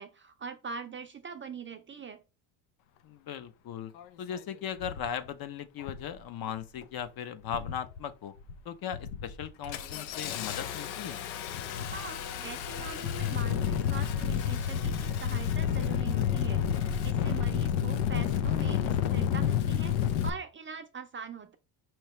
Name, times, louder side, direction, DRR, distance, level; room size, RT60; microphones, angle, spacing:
voice 1, 0.0-2.2 11.9-21.6, right 6 dB, 25° right, 0.4 m, -43 dB
voice 2, 3.0-3.9 4.2-8.3 8.6-11.2, left 8 dB, 50° left, 0.7 m, -38 dB
Engine starting, 4.0-4.1 4.8-5.1 5.8-6.1 6.5-7.0 7.4-8.0 8.4-8.6 8.9-20.3, left 9 dB, 85° left, 0.8 m, -30 dB
sound 1, 9.6-18.2, left 5 dB, 70° left, 1.5 m, -49 dB
5.6 x 3.1 x 3.0 m
cardioid pair, 115°, 47 cm